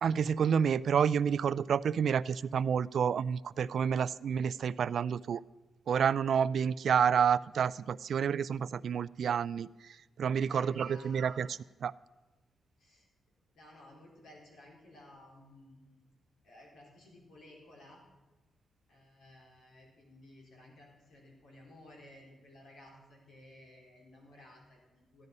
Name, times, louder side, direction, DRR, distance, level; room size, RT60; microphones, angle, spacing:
voice 1, 0.0-5.4 5.9-9.7 10.2-11.9, right 7 dB, 65° right, 19 dB, 0.3 m, -29 dB
voice 2, 10.5-11.5 12.8-13.0 13.5-16.0 16.4-18.0 18.9-25.3, left 1 dB, 85° left, -1 dB, 4.1 m, -56 dB
13.5 x 11.0 x 5.3 m, 1.2 s
cardioid pair, 120°, 0 cm